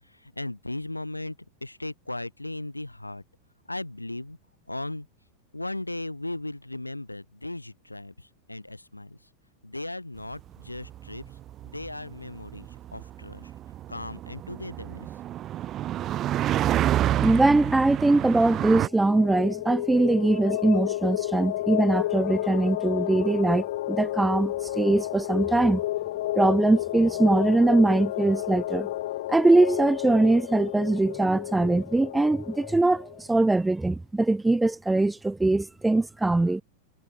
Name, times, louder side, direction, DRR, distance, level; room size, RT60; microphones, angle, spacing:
voice 1, 0.1-3.2 3.7-4.4 4.7-5.1 5.5-9.2 9.6-11.2 11.6-13.5 13.9-15.1, left 2 dB, 85° left, 4.1 m, -37 dB
sound 1, 10.4-18.9, right 12 dB, 30° right, 1.4 m, -29 dB
voice 2, 17.2-25.8 26.4-28.9 29.3-36.6, right 2 dB, 5° right, 1.3 m, -22 dB
sound 2, 18.9-33.2, left 15 dB, 55° left, 1.6 m, -31 dB
figure-of-eight pair, 90°, 0 cm